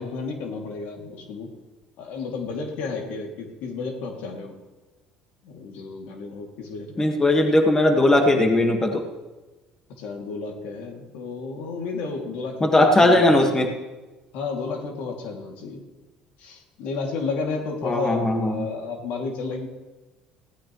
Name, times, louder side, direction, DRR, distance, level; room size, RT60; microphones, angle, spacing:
voice 1, 0.0-1.5 2.0-4.5 5.4-7.2 10.0-13.6 14.3-15.8 16.4-19.7, left 4 dB, 75° left, 2 dB, 2.4 m, -32 dB
voice 2, 7.0-9.1 12.6-13.7 17.8-18.7, left 1 dB, 20° left, 3 dB, 1.6 m, -19 dB
18.5 x 16.0 x 3.1 m, 1.2 s
supercardioid pair, 100°, 3 cm